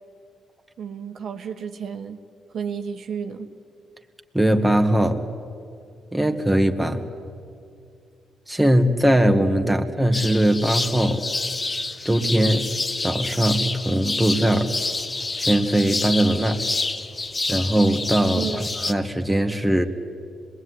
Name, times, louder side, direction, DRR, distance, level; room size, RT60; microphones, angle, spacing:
voice 1, 0.8-2.2 2.5-3.5 9.6-9.8 18.3-18.7, right 7 dB, 65° right, 5 dB, 1.5 m, -32 dB
voice 2, 4.3-5.3 6.1-7.1 8.5-11.3 12.1-12.7 13.0-14.8 15.4-16.7 17.5-19.8, right 1 dB, 5° right, 3 dB, 2.1 m, -20 dB
sound 1, 10.1-18.9, left 3 dB, 25° left, 1.2 m, -28 dB
26.5 x 21.0 x 9.8 m, 2.4 s
cardioid pair, 80°, 0 cm